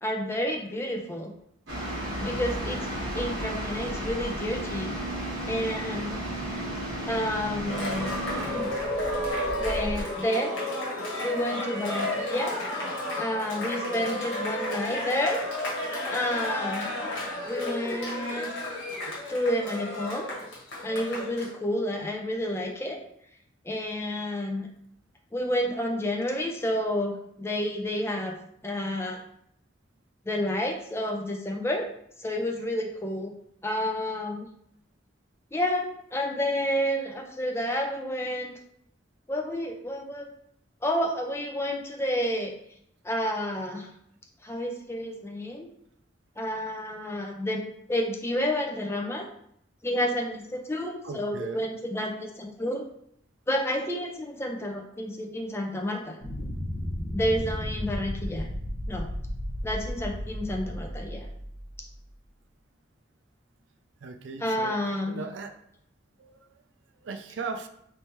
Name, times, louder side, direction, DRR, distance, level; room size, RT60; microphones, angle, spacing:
voice 1, 0.0-1.3 2.2-5.0 5.5-6.2 7.1-8.7 9.6-10.5 11.2-12.6 13.2-15.5 16.1-16.9 17.5-18.6 19.3-20.3 20.8-23.0 23.6-24.7 25.3-28.3 28.6-29.2 30.2-31.9 32.2-33.3 33.6-34.5 35.5-38.6 39.3-40.3 40.8-42.5 43.0-43.9 44.4-45.7 46.4-47.6 47.9-49.3 49.8-52.8 53.5-56.2 57.1-58.5 58.9-59.1 59.6-61.3 64.4-65.2, left 1 dB, 15° left, 1 dB, 0.4 m, -30 dB
sound 1, 1.7-10.0, right 1 dB, 90° right, 1.2 m, -33 dB
Cheering, 7.6-21.5, left 1 dB, 85° left, 1.2 m, -32 dB
voice 2, 51.0-51.6 64.0-64.8 65.1-65.5 66.2-66.3 67.0-67.7, right 4 dB, 70° right, 7 dB, 0.4 m, -37 dB
sound 2, 56.2-61.9, equal, 55° left, 1.3 m, -34 dB
3.2 x 3.1 x 3.0 m, 0.71 s
head